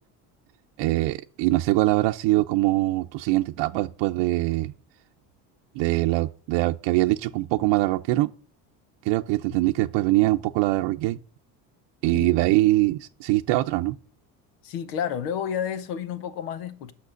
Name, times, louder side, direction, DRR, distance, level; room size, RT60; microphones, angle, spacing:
voice 1, 0.8-4.7 5.8-8.3 9.0-11.2 12.0-14.0, right 18 dB, 70° right, 0.7 m, -23 dB
voice 2, 14.6-16.9, left 8 dB, 85° left, 1.3 m, -30 dB
8.4 x 6.0 x 7.6 m
supercardioid pair, 85°, 46 cm